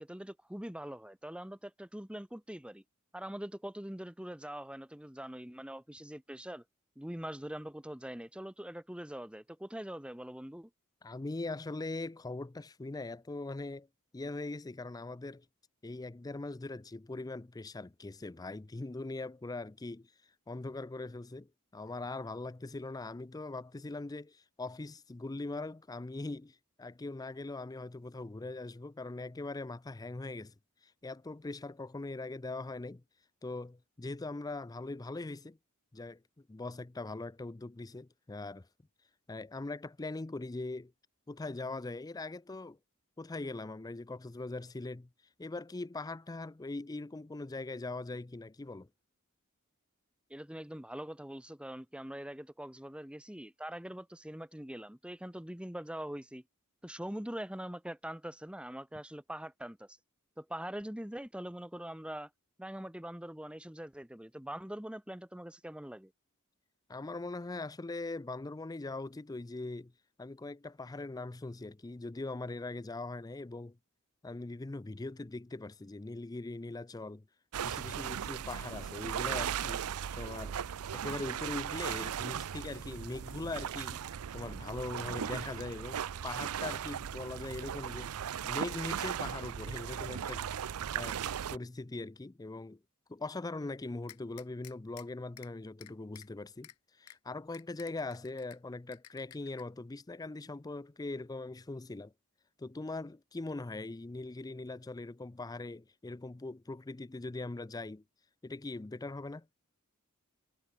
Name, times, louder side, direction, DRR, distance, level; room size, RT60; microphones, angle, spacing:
voice 1, 0.0-2.8 3.1-6.6 7.0-10.7 50.3-56.4 56.8-60.0 60.4-62.3 62.6-66.1, right 1 dB, 5° right, 1.2 m, -43 dB
voice 2, 11.0-13.9 14.1-15.5 15.8-20.1 20.5-30.5 30.8-33.0 33.4-35.6 35.9-38.7 39.3-40.9 41.3-42.8 43.2-45.1 45.4-48.9 66.9-69.9 70.2-73.8 74.2-77.3 77.6-79.8 80.1-80.6 80.9-84.0 84.3-90.5 90.9-91.2 91.5-92.8 93.1-96.7 97.0-102.1 102.6-108.0 108.4-109.5, left 2 dB, 15° left, 0.4 m, -41 dB
sound 1, 77.5-91.6, right 8 dB, 75° right, 0.5 m, -37 dB
sound 2, 94.1-95.0 95.4-95.5 95.8-96.3 96.6-96.7 97.1-97.2 97.5-98.6 98.9-99.6, left 12 dB, 75° left, 1.0 m, -52 dB
head